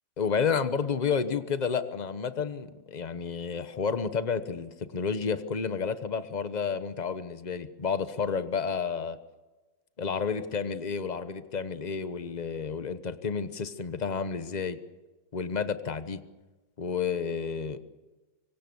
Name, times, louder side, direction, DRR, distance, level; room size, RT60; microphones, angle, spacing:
voice 1, 0.2-9.2 10.0-14.8 15.3-16.2 16.8-17.8, left 6 dB, 30° left, 11 dB, 0.8 m, -31 dB
25.0 x 24.0 x 7.0 m, 1.2 s
omnidirectional pair, 2.1 m